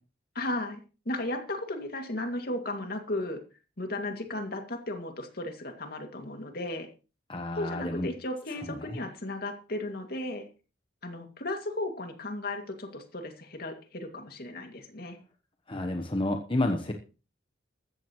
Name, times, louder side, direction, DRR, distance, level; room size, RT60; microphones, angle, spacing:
voice 1, 0.3-0.8 1.1-3.4 3.8-6.9 7.6-10.5 11.0-15.2, left 1 dB, 55° left, 5 dB, 2.4 m, -35 dB
voice 2, 7.3-8.1 8.7-9.0 15.7-16.9, left 1 dB, 30° left, 4 dB, 1.1 m, -30 dB
15.0 x 14.0 x 3.1 m, 0.34 s
head